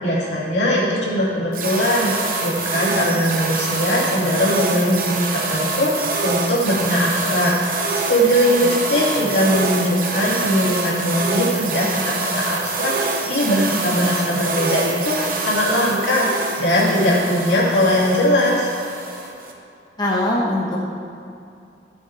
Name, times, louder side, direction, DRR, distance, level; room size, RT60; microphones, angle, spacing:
voice 1, 0.0-2.1 2.4-18.7, equal, 85° left, -6 dB, 2.6 m, -20 dB
sound 1, 1.5-19.5, right 3 dB, 50° right, 1.1 m, -25 dB
voice 2, 8.6-9.2 20.0-20.8, left 1 dB, 25° left, -4 dB, 1.2 m, -23 dB
14.0 x 7.8 x 3.4 m, 2.5 s
head